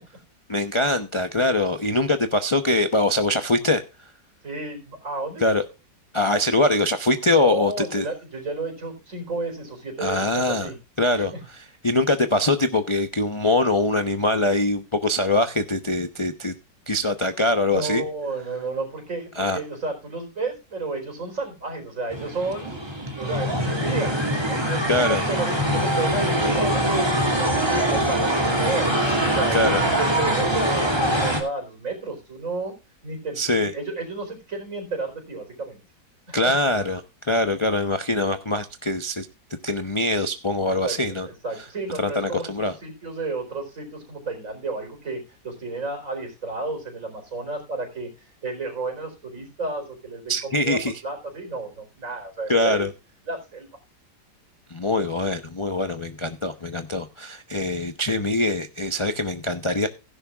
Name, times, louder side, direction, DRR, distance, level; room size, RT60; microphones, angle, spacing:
voice 1, 0.5-3.8 5.4-5.6 6.1-8.1 10.0-10.7 11.0-16.5 16.9-18.0 19.3-19.6 24.9-25.2 29.5-29.8 33.4-33.7 36.3-39.3 39.6-41.3 41.6-41.7 42.0-42.8 50.3-51.0 52.5-52.9 54.7-59.9, left 2 dB, 25° left, 7 dB, 0.6 m, -23 dB
voice 2, 4.4-5.4 7.4-10.8 11.1-11.4 17.7-22.8 23.2-27.6 27.9-28.9 29.2-32.7 33.0-35.8 36.3-36.5 40.7-48.1 48.4-50.8 51.0-52.9 53.3-53.7, right 3 dB, 45° right, 4 dB, 4.6 m, -32 dB
sound 1, 22.1-31.4, right 1 dB, 15° right, 2.7 m, -23 dB
16.5 x 10.5 x 2.4 m, 0.30 s
omnidirectional pair, 1.9 m